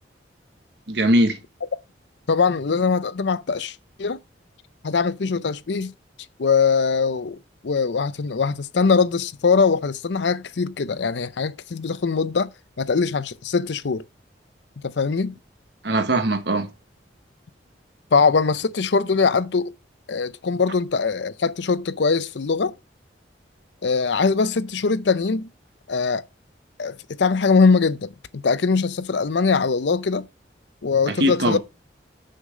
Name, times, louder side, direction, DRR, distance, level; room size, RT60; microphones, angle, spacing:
voice 1, 0.9-1.4 15.8-16.7 31.1-31.6, right 1 dB, 65° right, 1.4 m, -20 dB
voice 2, 2.3-4.2 4.8-5.9 6.4-7.4 7.6-14.0 14.8-15.3 18.1-19.7 20.1-22.7 23.8-25.5 25.9-26.2 26.8-28.1 28.4-30.3 30.8-31.6, left 5 dB, 75° left, 0.6 m, -22 dB
6.4 x 5.6 x 6.4 m
head